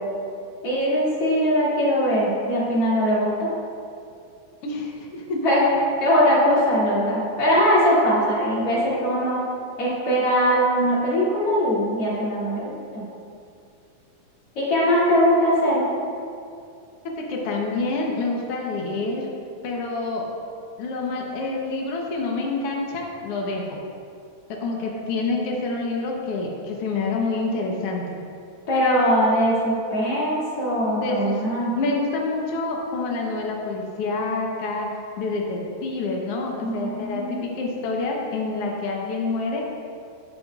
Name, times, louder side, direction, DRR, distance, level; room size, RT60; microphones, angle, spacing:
voice 1, 0.6-3.5 5.4-5.7 6.0-9.4 9.8-13.1 14.6-15.8 28.7-31.7 36.6-37.4, equal, 40° left, -8 dB, 3.3 m, -21 dB
voice 2, 4.6-5.4 17.1-19.3 19.6-20.2 20.8-23.7 24.5-28.2 30.9-31.4 31.7-34.9 35.2-39.6, left 3 dB, 80° left, -1 dB, 1.3 m, -27 dB
14.5 x 10.5 x 2.5 m, 2.4 s
omnidirectional pair, 4.2 m